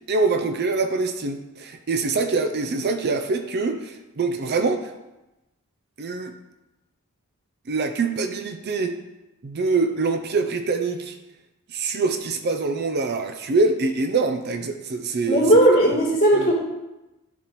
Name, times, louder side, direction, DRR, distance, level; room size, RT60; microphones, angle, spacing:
voice 1, 0.0-4.9 6.0-6.3 7.7-9.0 9.4-11.2 11.7-15.5 16.3-16.5, right 3 dB, 45° right, 7 dB, 0.5 m, -24 dB
voice 2, 15.3-16.5, right 1 dB, 30° left, -5 dB, 2.8 m, -17 dB
11.5 x 4.2 x 3.0 m, 0.98 s
head